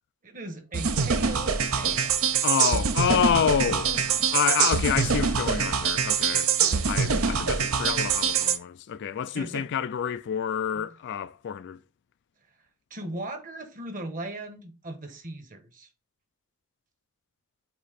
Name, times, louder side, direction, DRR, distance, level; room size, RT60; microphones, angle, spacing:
voice 1, 0.2-2.2 3.4-4.3 6.7-6.8 7.1-7.5 9.3-9.7 10.8-10.9 12.9-15.9, right 1 dB, 40° right, 1.3 m, -39 dB
sound 1, 0.7-8.6, right 6 dB, 65° right, 0.8 m, -24 dB
voice 2, 2.4-3.9 4.3-6.6 6.9-11.8, left 8 dB, 55° left, 0.3 m, -28 dB
8.2 x 2.9 x 4.2 m
head